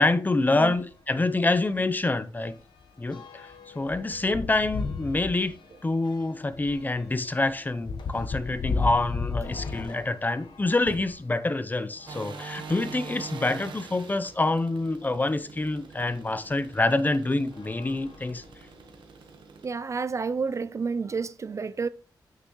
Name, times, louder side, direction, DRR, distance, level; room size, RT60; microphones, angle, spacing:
voice 1, 0.0-2.5 3.0-5.5 5.8-18.4, left 2 dB, 20° left, 0.6 m, -26 dB
sound 1, 0.7-0.9 1.3-1.4 1.7-11.2 11.9-13.3 14.0-14.1 14.3-14.4 16.1-16.2 16.8-17.1 17.5-18.8, left 4 dB, 70° left, 1.1 m, -36 dB
sound 2, 12.1-19.7, right 5 dB, 85° right, 1.3 m, -44 dB
voice 2, 19.6-21.9, right 5 dB, 40° right, 0.3 m, -30 dB
8.9 x 6.6 x 3.1 m
wide cardioid pair, 100°, 8 cm